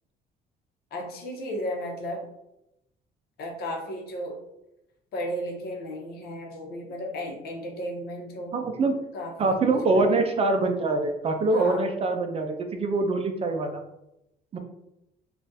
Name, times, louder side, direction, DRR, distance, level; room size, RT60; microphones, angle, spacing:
voice 1, 0.9-2.2 3.4-4.4 5.1-8.6 9.1-10.2 11.5-11.9, equal, 65° left, 0 dB, 0.9 m, -34 dB
voice 2, 8.5-8.9 9.4-13.8 14.5-14.6, right 3 dB, 35° right, 5 dB, 0.4 m, -24 dB
3.7 x 2.4 x 2.6 m, 0.87 s
cardioid pair, 110°, 17 cm